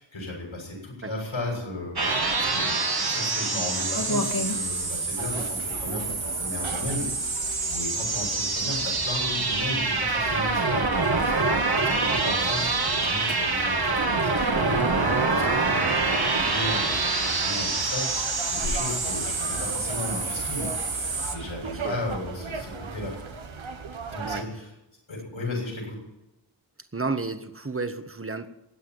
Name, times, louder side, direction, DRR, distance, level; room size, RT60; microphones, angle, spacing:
voice 1, 0.0-2.8 3.1-18.0 18.4-23.1 24.1-24.7 25.1-26.0, left 2 dB, 80° left, -2 dB, 6.9 m, -35 dB
sound 1, 2.0-21.4, right 3 dB, 50° right, 2.0 m, -26 dB
sound 2, 3.9-23.6, left 1 dB, 45° left, 2.2 m, -41 dB
sound 3, 5.2-24.4, right 5 dB, 85° right, 1.4 m, -38 dB
voice 2, 21.6-22.0 24.2-24.5 26.9-28.5, right 3 dB, 30° right, 9 dB, 1.5 m, -32 dB
14.5 x 9.4 x 9.3 m, 0.96 s
wide cardioid pair, 45°, 46 cm